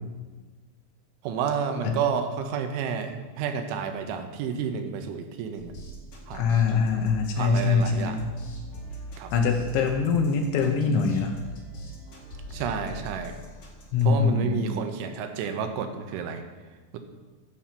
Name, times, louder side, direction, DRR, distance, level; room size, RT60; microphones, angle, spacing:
voice 1, 1.2-5.7 6.3-6.6 7.4-8.2 9.2-9.3 12.5-13.4 14.1-16.4, right 7 dB, 80° right, 6 dB, 3.3 m, -30 dB
sound 1, 5.6-14.0, equal, 60° left, 1.5 m, -41 dB
voice 2, 6.3-8.3 9.3-11.3 13.9-14.9, left 5 dB, 75° left, 3 dB, 3.1 m, -23 dB
13.5 x 5.5 x 7.5 m, 1.3 s
omnidirectional pair, 5.6 m